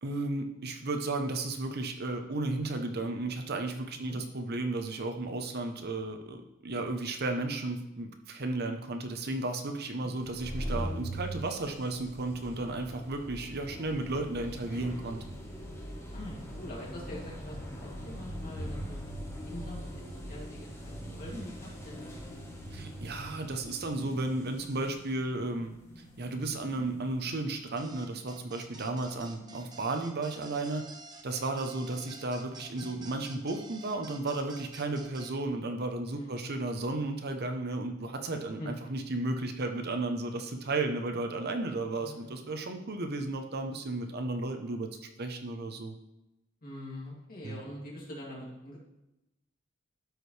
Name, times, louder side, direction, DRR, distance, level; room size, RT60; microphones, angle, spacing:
voice 1, 0.0-15.2 22.7-30.8 31.2-44.9 45.2-45.9 47.4-47.6, right 2 dB, 55° right, 5 dB, 0.8 m, -34 dB
sound 1, 10.2-27.6, equal, 15° left, 1.2 m, -42 dB
voice 2, 16.1-20.0 20.3-22.3 32.5-32.9 36.1-36.6 38.6-38.9 41.9-42.4 46.6-48.8, left 1 dB, 45° left, -4 dB, 2.6 m, -44 dB
sound 2, 22.2-30.2, equal, 90° left, 2.6 m, -59 dB
sound 3, 27.8-35.3, right 3 dB, 20° right, 0.8 m, -50 dB
12.5 x 4.9 x 3.3 m, 0.91 s
head